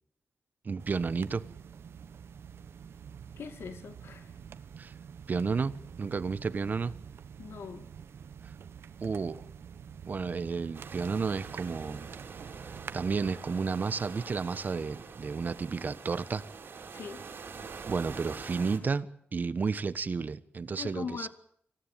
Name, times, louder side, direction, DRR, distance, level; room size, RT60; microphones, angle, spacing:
voice 1, 0.6-1.4 4.8-4.9 5.3-6.9 8.4-8.5 9.0-9.4 10.1-12.1 12.9-16.4 17.6-21.3, right 5 dB, 45° right, 1.2 m, -32 dB
sound 1, 0.8-13.4, right 7 dB, 85° right, 1.2 m, -47 dB
voice 2, 3.4-4.3 7.4-7.9 16.9-17.2 20.8-21.3, left 6 dB, 80° left, 2.3 m, -41 dB
sound 2, 10.7-18.8, right 5 dB, 65° right, 5.1 m, -45 dB
26.0 x 16.5 x 9.4 m
wide cardioid pair, 105°, 4 cm